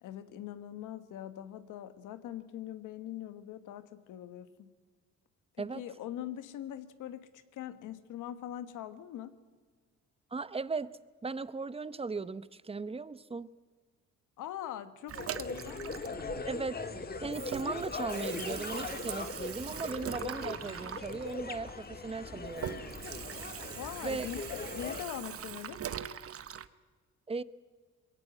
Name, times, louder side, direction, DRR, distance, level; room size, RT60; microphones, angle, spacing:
voice 1, 0.0-4.7 5.6-9.4 14.4-15.8 23.8-25.8, left 11 dB, 90° left, 11 dB, 1.3 m, -42 dB
voice 2, 10.3-13.5 16.5-16.8 17.2-22.8 24.0-24.3 27.3-27.4, right 4 dB, 20° right, 16 dB, 0.8 m, -37 dB
sound 1, 15.1-25.0, left 3 dB, 30° left, 1.7 m, -40 dB
Water tap faucet / Sink (filling or washing), 15.1-16.9 17.2-26.7, right 9 dB, 50° right, 0.9 m, -42 dB
22.0 x 17.0 x 9.0 m, 1.5 s
cardioid pair, 90°, 30 cm